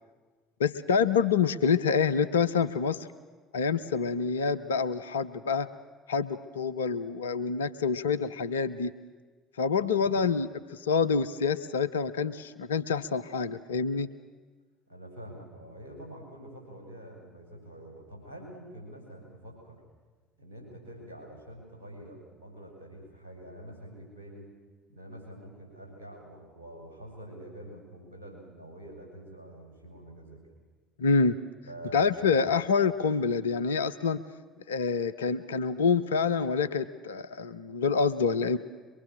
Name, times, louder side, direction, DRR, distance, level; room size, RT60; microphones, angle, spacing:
voice 1, 0.6-3.1 3.5-5.7 6.1-8.9 9.6-14.1 31.0-31.4 31.9-34.2 34.7-38.6, left 5 dB, 75° left, 12 dB, 0.7 m, -27 dB
voice 2, 9.7-10.0 14.9-19.8 20.4-24.5 24.9-30.4 31.7-32.4, right 1 dB, 75° right, 1 dB, 7.2 m, -46 dB
23.5 x 23.0 x 7.4 m, 1.4 s
figure-of-eight pair, 60°, 0 cm